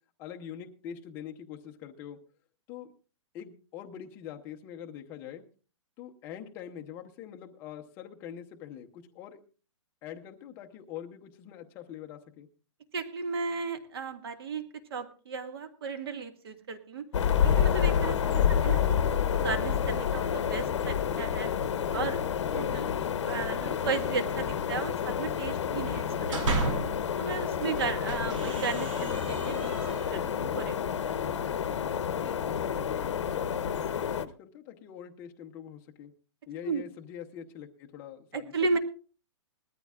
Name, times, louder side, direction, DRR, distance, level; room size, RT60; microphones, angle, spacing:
voice 1, 0.2-2.2 2.7-2.9 3.3-5.4 6.0-9.4 10.0-12.5 18.4-18.6 22.5-22.9 32.6-36.1 36.5-38.5, left 9 dB, 15° left, 4 dB, 0.8 m, -44 dB
voice 2, 12.9-17.0 17.4-21.5 21.9-22.2 22.5-22.8 23.2-26.7 27.2-31.1 36.6-36.8 38.3-38.8, right 4 dB, 50° right, 9 dB, 1.9 m, -35 dB
sound 1, 17.1-34.3, left 8 dB, 65° left, 1.0 m, -29 dB
sound 2, 26.1-27.1 27.6-30.4, right 3 dB, 75° right, 3.2 m, -34 dB
20.5 x 13.5 x 2.4 m, 0.37 s
hypercardioid pair, 180°, 16 cm